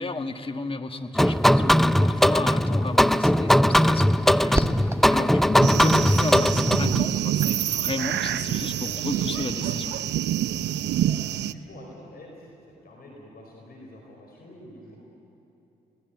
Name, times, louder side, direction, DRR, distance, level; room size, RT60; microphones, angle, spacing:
voice 1, 0.0-10.0, left 3 dB, 30° left, 6 dB, 1.7 m, -33 dB
sound 1, 1.2-7.0, equal, ahead, 0.5 m, -19 dB
sound 2, 4.5-10.2, right 1 dB, 15° right, 1.3 m, -36 dB
sound 3, 5.6-11.5, right 11 dB, 70° right, 0.6 m, -27 dB
voice 2, 11.0-12.5 12.8-15.0, left 1 dB, 55° left, -1 dB, 4.8 m, -46 dB
22.5 x 18.5 x 9.3 m, 3.0 s
supercardioid pair, 50°, 19 cm